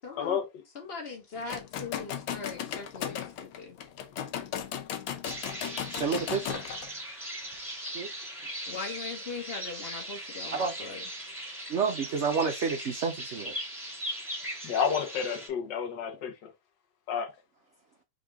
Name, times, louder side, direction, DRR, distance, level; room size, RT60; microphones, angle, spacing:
voice 1, 0.0-0.4 0.7-3.8 8.7-11.0, left 4 dB, 35° left, 1.3 m, -40 dB
sound 1, 1.4-6.9, left 9 dB, 85° left, 1.5 m, -36 dB
sound 2, 5.2-15.5, right 1 dB, 5° right, 2.0 m, -39 dB
voice 2, 5.9-6.6 7.9-8.1 10.5-10.7 11.7-13.6, right 5 dB, 85° right, 0.6 m, -29 dB
voice 3, 14.6-16.5 17.1-17.3, left 7 dB, 70° left, 1.5 m, -30 dB
3.8 x 3.7 x 3.4 m
omnidirectional pair, 2.1 m